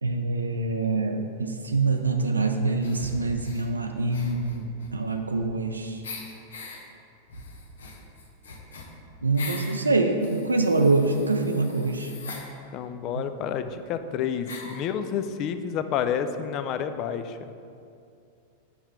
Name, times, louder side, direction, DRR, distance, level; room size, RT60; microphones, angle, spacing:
voice 1, 0.0-4.6 4.9-6.0 9.2-12.1 13.1-13.2, right 3 dB, 80° right, 5 dB, 0.4 m, -25 dB
sound 1, 2.8-3.7 4.1-5.7 6.0-6.8 7.3-9.8 10.2-12.5 13.4-13.5 13.7-13.8 14.5-14.8, left 3 dB, 65° left, 0.8 m, -41 dB
voice 2, 12.7-17.4, left 8 dB, 40° left, 9 dB, 0.4 m, -29 dB
5.7 x 5.4 x 4.5 m, 2.5 s
figure-of-eight pair, 90°, 0 cm